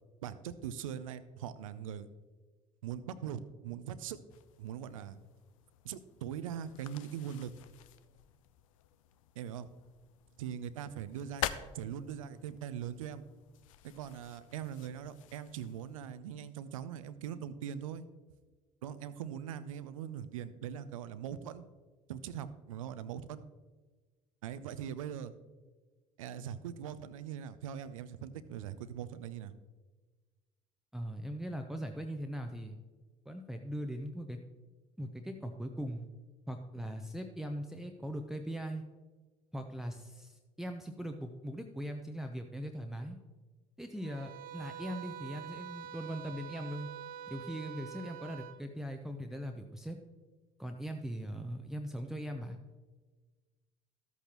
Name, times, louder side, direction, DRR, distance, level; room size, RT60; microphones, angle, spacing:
voice 1, 0.2-2.1 2.8-4.2 4.6-5.2 5.8-7.5 9.4-9.7 10.4-11.5 11.7-13.2 13.8-18.1 18.8-21.6 22.1-23.4 24.4-25.3 26.2-29.5, right 9 dB, 80° right, 14 dB, 0.5 m, -41 dB
sound 1, 4.3-16.2, left 12 dB, 75° left, 0.5 m, -47 dB
voice 2, 30.9-32.8 33.3-34.4 35.0-36.1 36.5-38.8 39.5-43.2 43.8-46.9 47.3-50.0 50.6-52.6, equal, ahead, 4 dB, 0.7 m, -40 dB
sound 2, 44.0-48.6, right 9 dB, 55° right, 0.9 m, -46 dB
13.0 x 8.2 x 3.0 m, 1.3 s
hypercardioid pair, 60°, 17 cm